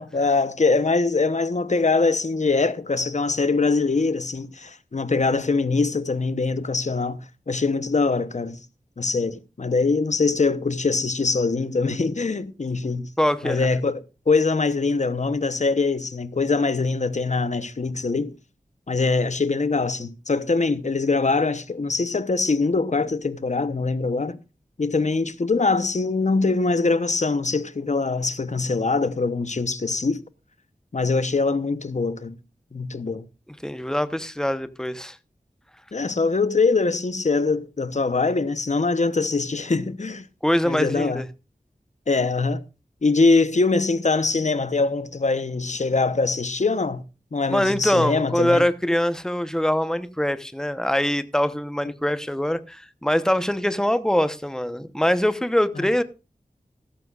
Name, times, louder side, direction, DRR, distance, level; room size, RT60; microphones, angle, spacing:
voice 1, 0.0-7.2 7.5-8.6 9.0-13.1 13.4-18.3 18.9-24.4 24.8-30.2 30.9-32.4 32.7-33.3 35.9-40.3 40.6-41.2 42.1-42.6 43.0-47.0 47.3-48.6 55.8-55.9, left 3 dB, 55° left, 1.0 m, -23 dB
voice 2, 13.2-13.7 33.6-35.2 40.4-41.3 47.5-56.0, equal, 5° left, 1.0 m, -23 dB
16.0 x 13.5 x 2.5 m
wide cardioid pair, 75°, 15 cm